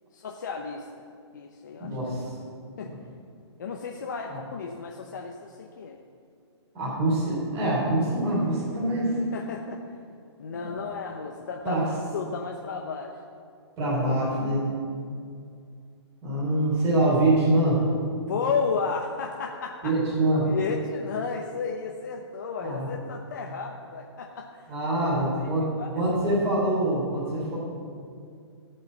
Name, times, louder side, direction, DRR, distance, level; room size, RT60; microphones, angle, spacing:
voice 1, 0.1-1.1 1.3-2.0 2.8-2.9 3.6-6.0 9.3-9.8 10.4-11.8 12.1-13.2 18.2-19.9 20.4-24.7 25.4-26.0, left 5 dB, 40° left, 1 dB, 0.8 m, -33 dB
voice 2, 1.8-2.2 4.3-4.4 6.7-9.2 11.6-11.8 13.8-14.7 16.2-17.8 19.8-20.5 22.6-22.9 24.7-25.7 26.0-27.6, right 1 dB, 15° right, -8 dB, 3.5 m, -24 dB
16.5 x 5.6 x 7.2 m, 2.3 s
hypercardioid pair, 180°, 15 cm